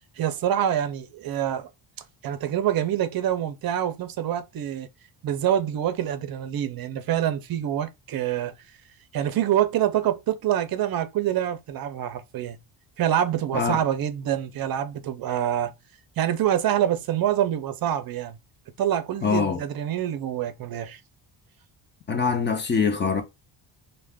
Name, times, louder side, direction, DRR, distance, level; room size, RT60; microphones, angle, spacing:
voice 1, 0.2-1.7 2.2-4.9 5.2-8.6 9.1-12.6 13.0-15.7 16.2-18.4 18.8-21.0, right 11 dB, 50° right, 0.5 m, -26 dB
voice 2, 19.2-19.6 22.1-23.2, left 5 dB, 25° left, 0.4 m, -23 dB
2.4 x 2.2 x 3.4 m
cardioid pair, 130°, 48 cm